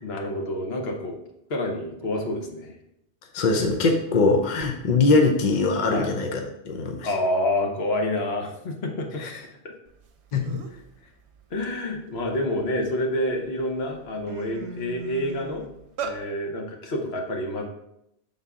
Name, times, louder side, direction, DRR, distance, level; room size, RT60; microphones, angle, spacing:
voice 1, 0.0-1.1 1.5-2.7 5.9-6.1 7.0-9.2 9.6-9.7 11.5-15.6 16.0-17.6, left 1 dB, 65° left, 1 dB, 1.2 m, -28 dB
voice 2, 3.3-7.1 9.2-9.4 10.3-10.6, left 3 dB, 50° left, 3 dB, 0.7 m, -22 dB
sound 1, 10.1-10.2 10.5-10.9 11.3-12.9 13.5-13.6 13.9-16.2, right 5 dB, 75° right, 0.9 m, -36 dB
6.8 x 3.9 x 3.6 m, 0.81 s
omnidirectional pair, 1.1 m